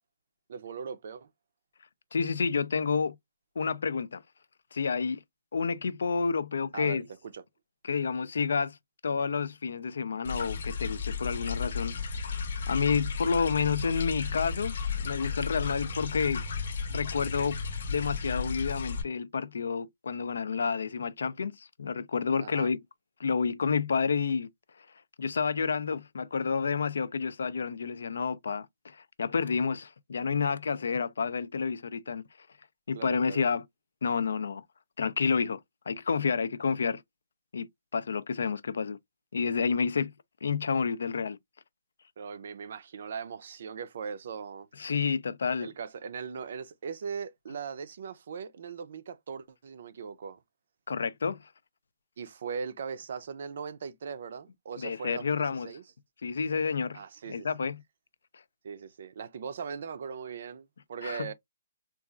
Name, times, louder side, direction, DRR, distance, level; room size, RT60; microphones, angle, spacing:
voice 1, 0.5-1.3 6.7-7.0 7.3-7.4 22.4-22.7 32.9-33.4 42.2-44.7 45.6-50.4 52.2-55.8 56.9-57.5 58.6-61.3, right 6 dB, 50° right, 0.4 m, -39 dB
voice 2, 2.1-3.2 3.6-4.2 4.7-5.2 5.5-7.1 7.8-8.8 9.0-11.9 12.7-16.4 16.9-17.6 17.9-22.8 23.2-24.5 25.2-32.2 32.9-33.6 34.0-34.6 35.0-35.6 35.9-37.0 37.5-39.0 39.3-40.1 40.4-41.4 44.8-45.7 50.9-51.4 54.8-55.8 56.2-57.0 57.3-57.8 61.0-61.3, left 5 dB, 80° left, 0.4 m, -29 dB
sound 1, 10.2-19.0, left 5 dB, 55° left, 0.8 m, -34 dB
3.9 x 2.4 x 2.3 m
hypercardioid pair, 175°, 0 cm